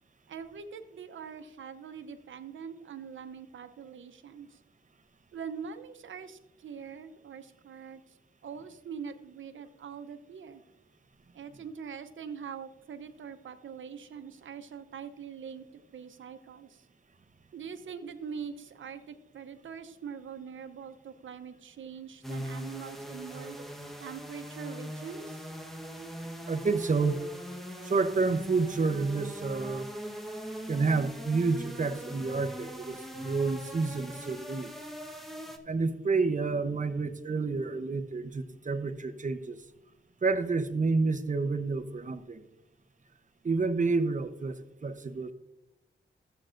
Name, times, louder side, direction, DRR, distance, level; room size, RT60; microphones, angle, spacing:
voice 1, 0.3-4.6 5.3-8.2 8.4-10.6 11.3-16.9 17.5-23.6 24.0-25.5, right 6 dB, 85° right, 9 dB, 0.8 m, -43 dB
sound 1, 22.2-35.6, equal, ahead, 1.1 m, -41 dB
voice 2, 26.5-27.2 27.8-29.9 30.7-34.7 35.6-39.6 40.2-42.4 43.4-45.3, right 4 dB, 40° right, 8 dB, 0.8 m, -29 dB
13.5 x 7.8 x 2.5 m, 0.91 s
cardioid pair, 70°, 20 cm